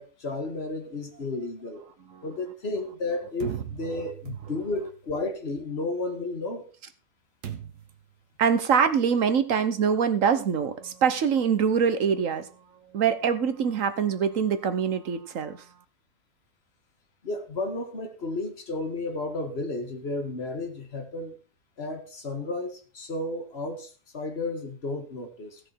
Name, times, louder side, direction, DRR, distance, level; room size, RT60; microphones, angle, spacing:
voice 1, 0.0-1.8 2.2-6.7 17.2-21.4 21.8-25.6, left 2 dB, 40° left, 4 dB, 2.0 m, -33 dB
sound 1, 3.4-4.9 7.4-8.0, right 10 dB, 80° right, 1.7 m, -37 dB
voice 2, 8.4-12.5 12.9-15.6, right 7 dB, 60° right, 11 dB, 1.2 m, -24 dB
15.0 x 6.7 x 4.5 m, 0.35 s
omnidirectional pair, 1.7 m